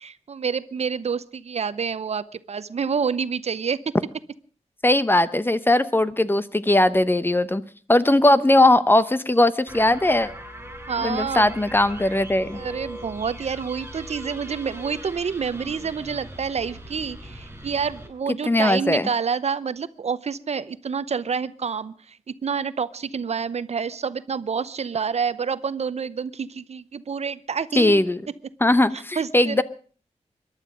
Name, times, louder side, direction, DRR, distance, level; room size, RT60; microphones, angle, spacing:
voice 1, 0.0-3.8 10.9-11.5 12.5-28.0 29.2-29.6, right 6 dB, 65° right, 15 dB, 0.7 m, -28 dB
voice 2, 4.8-7.6 7.9-10.3 11.0-12.6 18.5-19.1 27.8-28.2 28.6-29.6, left 1 dB, 20° left, 15 dB, 0.8 m, -19 dB
sound 1, 9.7-18.1, right 1 dB, 20° right, 6.6 m, -40 dB
23.0 x 11.5 x 5.1 m, 0.41 s
wide cardioid pair, 95°, 12 cm